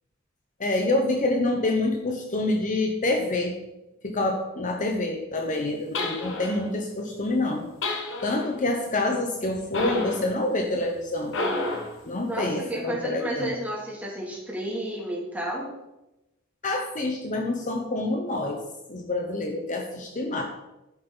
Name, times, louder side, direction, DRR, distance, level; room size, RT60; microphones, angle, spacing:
voice 1, 0.6-3.5 4.0-7.7 8.2-11.4 12.0-13.5 16.6-18.6 18.9-20.4, left 2 dB, 35° left, 3 dB, 1.0 m, -27 dB
sound 1, 5.9-6.7 7.8-8.6 9.7-10.3 11.3-12.0, left 2 dB, 60° left, 1.5 m, -30 dB
voice 2, 12.3-15.7, right 1 dB, 5° right, -3 dB, 2.8 m, -31 dB
11.5 x 8.4 x 4.0 m, 0.95 s
head